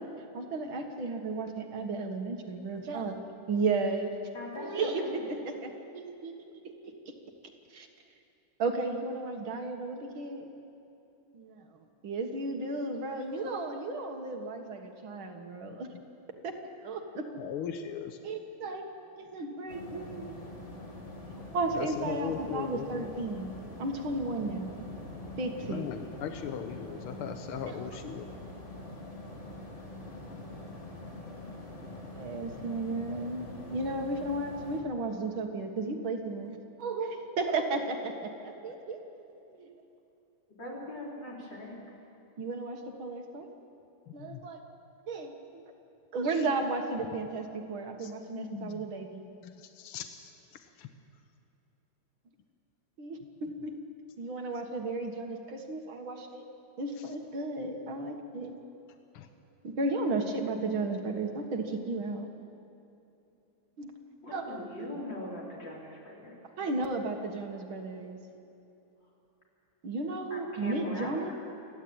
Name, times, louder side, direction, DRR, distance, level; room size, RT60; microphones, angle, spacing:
voice 1, 0.3-3.2 3.5-4.1 4.6-6.3 6.6-6.9 7.7-7.9 8.6-10.5 11.3-11.7 12.0-15.9 16.4-17.4 18.2-18.8 19.2-20.4 21.5-23.5 23.8-24.8 25.4-25.9 32.1-39.0 39.5-39.8 42.4-43.5 44.1-44.6 45.1-45.6 46.1-49.2 53.0-53.7 54.2-56.4 56.8-58.5 59.6-62.3 63.8-63.9 64.3-64.6 66.6-68.2 69.8-71.3, right 3 dB, 70° right, 4 dB, 2.3 m, -34 dB
voice 2, 4.3-5.2 32.4-32.5 40.6-41.8 64.2-66.4 70.3-71.2, left 1 dB, 55° left, -4 dB, 4.7 m, -41 dB
voice 3, 15.6-16.0 17.4-18.2 21.8-23.0 25.1-25.2 25.6-28.4 44.3-44.4 46.4-46.5 48.0-48.9 49.4-50.3 50.8-50.9 59.1-59.3, left 8 dB, 85° left, 7 dB, 1.8 m, -39 dB
sound 1, 19.7-34.8, left 2 dB, 25° left, 2.5 m, -44 dB
28.0 x 11.0 x 8.7 m, 2.8 s
omnidirectional pair, 2.3 m